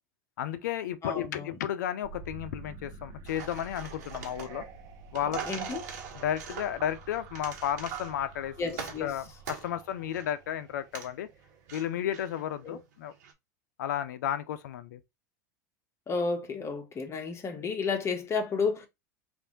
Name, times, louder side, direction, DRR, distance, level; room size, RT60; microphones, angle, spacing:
voice 1, 0.4-4.6 5.1-5.4 6.1-11.3 11.7-13.1 13.8-15.0, left 10 dB, 80° left, 0.6 m, -33 dB
voice 2, 1.0-1.5 5.5-5.8 8.6-9.1 12.6-12.8 16.1-18.9, left 4 dB, 30° left, 1.1 m, -31 dB
sound 1, 2.0-12.1, right 5 dB, 45° right, 1.0 m, -46 dB
sound 2, 3.3-13.3, right 6 dB, 75° right, 1.1 m, -45 dB
3.3 x 2.6 x 3.8 m
hypercardioid pair, 105°, 9 cm